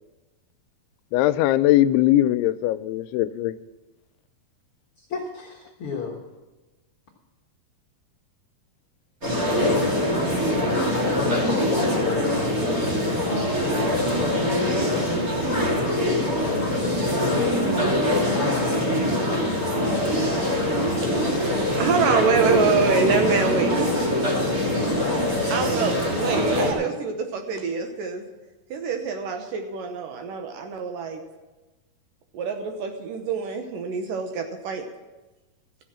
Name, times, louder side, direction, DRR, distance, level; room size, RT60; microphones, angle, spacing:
voice 1, 1.1-3.6 17.5-17.8, left 14 dB, 90° left, 2.6 m, -21 dB
voice 2, 5.0-6.2 11.1-12.5 13.2-15.3 17.7-19.5 19.8-20.2, left 4 dB, 60° left, 1.4 m, -34 dB
sound 1, 9.2-26.7, left 1 dB, 25° right, 2.1 m, -23 dB
voice 3, 17.6-17.9 21.1-21.3 21.8-23.9 25.5-28.2 28.7-31.2 32.3-34.9, right 5 dB, 70° right, 2.3 m, -26 dB
14.0 x 7.8 x 7.4 m
omnidirectional pair, 4.5 m